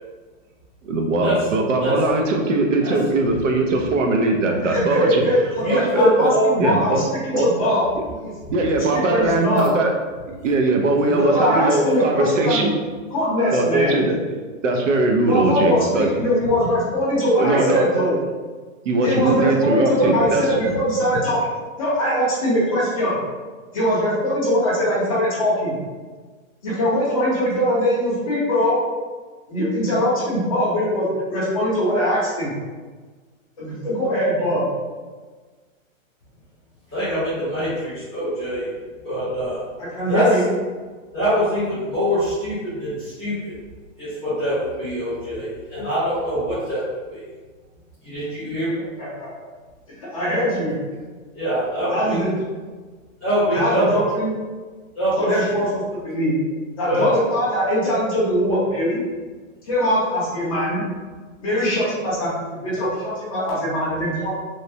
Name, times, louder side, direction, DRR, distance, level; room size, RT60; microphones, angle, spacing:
voice 1, 0.8-5.2 5.7-6.3 6.6-7.0 7.3-7.5 8.5-9.9 10.4-12.7 13.5-14.1 14.6-16.1 17.4-17.8 18.8-20.6, right 2 dB, 70° right, 2 dB, 0.6 m, -20 dB
voice 2, 4.6-7.8 8.2-8.3 8.6-9.7 11.1-12.7 13.1-13.9 15.3-18.2 19.0-21.4 21.8-23.2 23.7-25.7 26.6-28.7 29.5-32.5 33.6-34.7 39.9-40.4 49.0-49.3 49.9-50.7 51.9-52.3 53.5-54.3 55.2-56.3 56.8-59.0 59.7-60.8 61.4-64.3, equal, 25° left, -8 dB, 0.7 m, -21 dB
voice 3, 5.6-6.5 11.0-11.2 11.7-11.8 36.9-38.7 39.0-39.6 40.1-40.2 41.1-43.5 44.0-46.8 47.1-47.2 48.0-48.8 51.3-52.2 53.2-54.0 54.9-55.3 56.8-57.1, equal, 15° right, -21 dB, 0.4 m, -23 dB
3.1 x 2.0 x 2.6 m, 1.4 s
hypercardioid pair, 175°, 40 cm